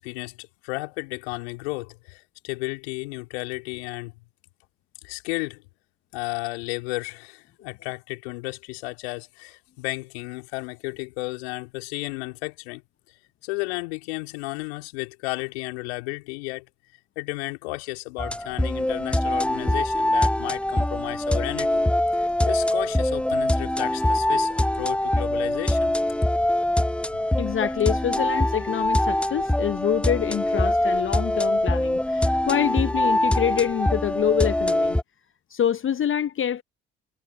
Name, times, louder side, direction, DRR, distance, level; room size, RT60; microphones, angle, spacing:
voice 1, 0.0-4.1 5.0-5.6 6.1-12.8 13.4-16.7 17.2-21.8 22.1-25.9, left 25 dB, 75° left, 3.6 m, -33 dB
sound 1, 18.2-35.0, left 1 dB, 5° left, 0.7 m, -23 dB
voice 2, 27.4-35.0 35.5-36.6, left 9 dB, 40° left, 0.9 m, -26 dB
hypercardioid pair, 50°, 32 cm